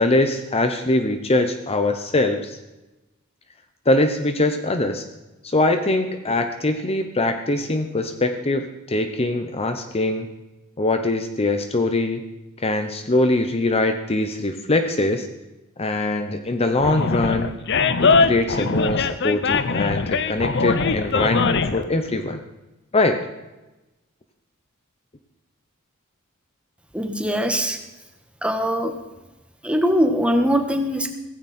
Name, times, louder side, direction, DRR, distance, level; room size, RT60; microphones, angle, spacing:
voice 1, 0.0-2.6 3.9-5.0 5.4-10.3 10.8-12.2 12.6-15.3 15.8-17.5 18.0-22.4 22.9-23.2, left 2 dB, 30° left, 7 dB, 0.9 m, -22 dB
Animal, 16.8-21.8, left 4 dB, 55° left, 0.8 m, -21 dB
voice 2, 26.9-27.8 28.4-28.9 29.6-31.1, equal, 5° right, 5 dB, 1.5 m, -21 dB
16.5 x 15.5 x 4.4 m, 1.0 s
head